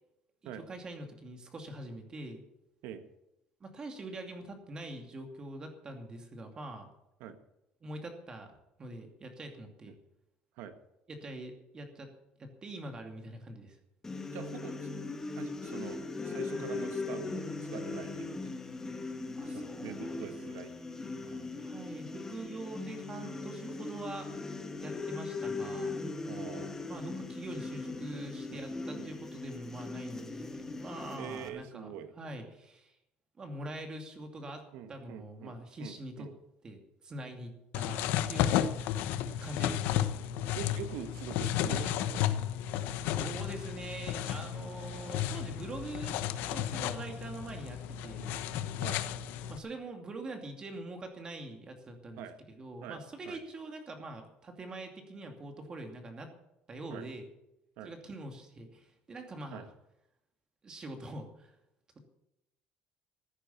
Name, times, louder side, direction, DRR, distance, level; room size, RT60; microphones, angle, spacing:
voice 1, 0.4-2.4 3.6-6.9 7.8-9.9 11.1-12.1 12.4-13.8 16.5-16.6 19.4-20.7 21.6-24.3 24.8-25.9 26.9-32.9 33.4-34.6 34.9-36.3 36.6-38.5 39.4-40.1 43.0-46.2 46.5-48.4 49.5-56.3 56.7-57.3 57.8-59.7 60.6-61.5, right 2 dB, 25° right, 4 dB, 2.6 m, -44 dB
sound 1, 14.0-31.5, left 3 dB, 15° left, 1.5 m, -39 dB
voice 2, 14.3-14.9 15.4-18.4 19.5-21.5 26.3-26.8 28.5-28.6 28.9-29.4 31.2-32.1 34.7-36.3 40.5-42.3 48.8-49.0 52.2-52.4 52.8-53.4 56.9-57.1 57.8-57.9 59.5-59.7, right 8 dB, 80° right, 9 dB, 1.6 m, -45 dB
sound 2, 37.7-49.6, left 11 dB, 80° left, 1.0 m, -33 dB
15.0 x 10.0 x 7.2 m, 0.85 s
cardioid pair, 155°, 3 cm